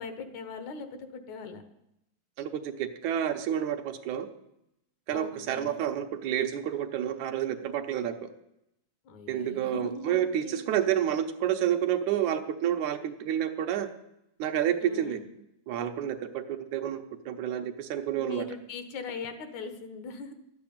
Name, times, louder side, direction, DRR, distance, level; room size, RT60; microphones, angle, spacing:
voice 1, 0.0-1.6 5.1-5.8 9.1-10.6 14.8-15.3 18.2-20.3, left 4 dB, 70° left, 9 dB, 2.6 m, -40 dB
voice 2, 2.4-4.3 5.1-8.1 9.3-13.9 14.4-15.2 15.7-18.5, right 10 dB, 75° right, 6 dB, 2.3 m, -29 dB
12.5 x 8.8 x 8.7 m, 0.83 s
omnidirectional pair, 3.5 m